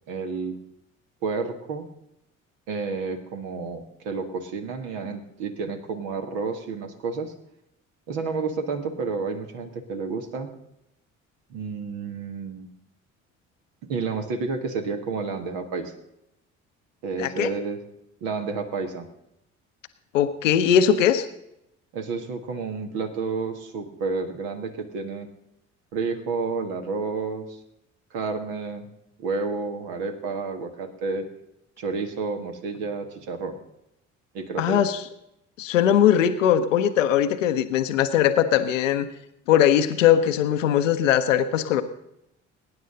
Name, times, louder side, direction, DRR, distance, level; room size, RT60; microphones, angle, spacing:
voice 1, 0.1-0.6 1.2-1.9 2.7-7.3 8.1-10.5 11.5-12.7 13.9-15.9 17.0-17.8 18.2-19.1 21.9-25.3 25.9-27.6 28.1-28.9 29.2-31.3 31.8-33.6 34.3-34.8, right 4 dB, 60° right, 6 dB, 1.7 m, -30 dB
voice 2, 17.2-17.5 20.1-21.3 34.6-35.0 35.6-39.1 39.5-41.8, left 9 dB, 75° left, 10 dB, 0.8 m, -20 dB
22.5 x 10.0 x 3.9 m, 0.82 s
figure-of-eight pair, 50°, 39 cm